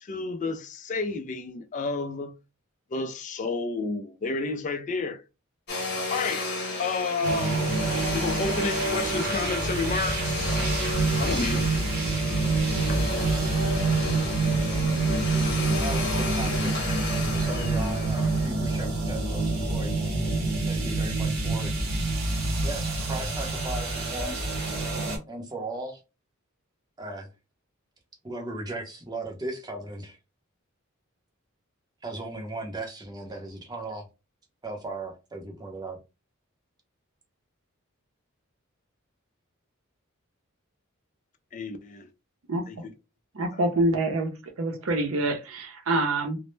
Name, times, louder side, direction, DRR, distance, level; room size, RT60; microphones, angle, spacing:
voice 1, 0.0-2.4 2.9-5.2 5.9-7.7 8.1-10.6 11.2-11.7 12.9-13.0 41.5-42.1 42.7-42.9, left 3 dB, 35° left, 0.3 m, -31 dB
Domestic sounds home sounds, 5.7-18.5, left 3 dB, 50° left, 0.8 m, -33 dB
sound 1, 7.2-25.2, right 3 dB, 50° right, 0.9 m, -27 dB
voice 2, 15.8-19.9 20.7-21.7 22.6-24.6 25.3-26.0 27.0-27.3 28.2-30.2 32.0-34.0 34.6-36.0, right 2 dB, 20° right, 0.6 m, -37 dB
voice 3, 43.3-44.3 44.6-46.4, right 2 dB, 80° right, 0.6 m, -26 dB
2.1 x 2.0 x 3.1 m
head